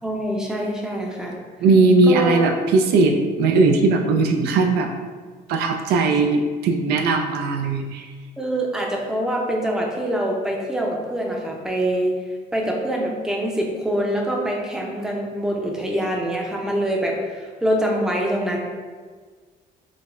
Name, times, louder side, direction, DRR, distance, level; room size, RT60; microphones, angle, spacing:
voice 1, 0.0-1.4 2.1-2.4 8.4-12.2 12.5-18.6, right 1 dB, 5° right, -1 dB, 0.5 m, -24 dB
voice 2, 1.6-4.9 5.5-8.1, right 3 dB, 75° right, 3 dB, 0.4 m, -18 dB
4.8 x 2.1 x 2.4 m, 1.5 s
cardioid pair, 110°, 17 cm